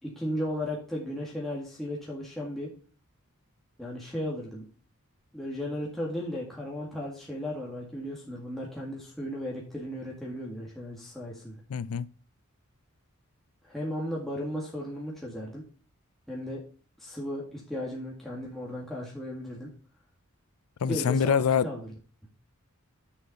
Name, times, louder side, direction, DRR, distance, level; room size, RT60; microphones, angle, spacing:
voice 1, 0.0-2.7 3.8-4.6 5.3-11.6 13.6-15.6 16.3-16.6 17.0-19.7 20.9-21.9, left 1 dB, ahead, 1.9 m, -35 dB
voice 2, 11.7-12.1 20.8-21.7, left 7 dB, 75° left, 0.4 m, -25 dB
6.9 x 5.6 x 5.6 m
head